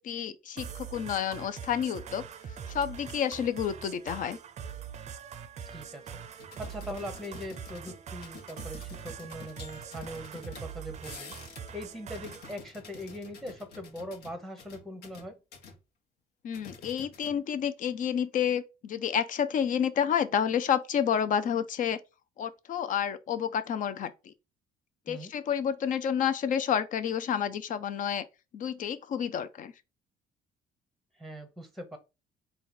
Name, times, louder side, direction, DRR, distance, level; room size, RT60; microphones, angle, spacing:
voice 1, 0.0-2.2 2.7-4.4 16.4-22.0 22.4-24.3 25.1-28.2 28.5-29.7, left 8 dB, 50° left, 0.5 m, -30 dB
sound 1, 0.6-12.6, right 7 dB, 40° right, 0.5 m, -43 dB
voice 2, 5.7-6.2 6.6-11.3 11.7-15.4 25.1-25.3 31.1-32.0, equal, ahead, 0.8 m, -41 dB
sound 2, 6.4-11.8 12.0-15.8 16.5-17.6 17.9-18.1, left 5 dB, 70° left, 1.2 m, -49 dB
4.0 x 2.3 x 4.0 m
cardioid pair, 110°, 17 cm